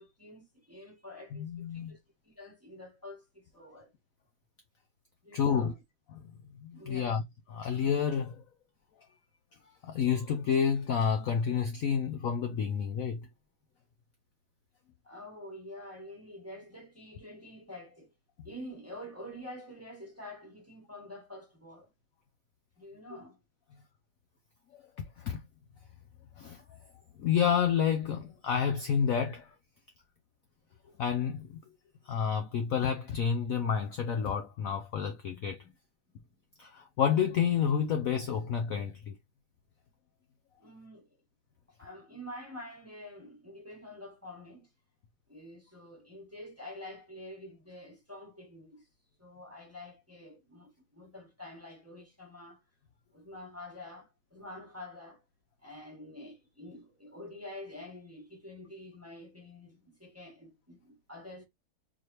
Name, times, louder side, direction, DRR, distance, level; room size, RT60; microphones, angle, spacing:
voice 1, 0.0-2.0 2.2-3.9 5.2-5.8 6.7-7.2 15.0-18.1 18.4-21.9 22.8-23.4 35.3-35.7 40.6-41.1 41.8-44.7 45.3-48.9 49.2-52.6 53.1-55.2 55.6-61.4, left 1 dB, 10° right, 1.0 m, -47 dB
voice 2, 1.3-2.0 5.3-5.7 6.6-7.2 7.5-8.4 9.8-13.3 24.7-24.8 25.2-25.4 26.4-26.6 27.2-29.5 31.0-31.6 32.1-35.6 36.6-39.1, left 7 dB, 80° left, 0.7 m, -29 dB
4.0 x 3.2 x 3.0 m
omnidirectional pair, 2.1 m